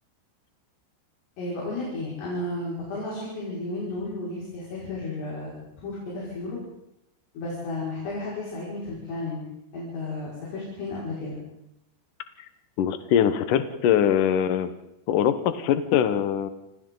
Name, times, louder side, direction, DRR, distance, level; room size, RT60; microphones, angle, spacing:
voice 1, 1.4-6.6 7.3-9.4 9.7-11.4, left 2 dB, 60° left, -6 dB, 7.7 m, -33 dB
voice 2, 12.8-14.7 15.1-16.5, left 9 dB, 75° left, 10 dB, 1.9 m, -22 dB
29.5 x 27.0 x 4.0 m, 0.82 s
omnidirectional pair, 5.6 m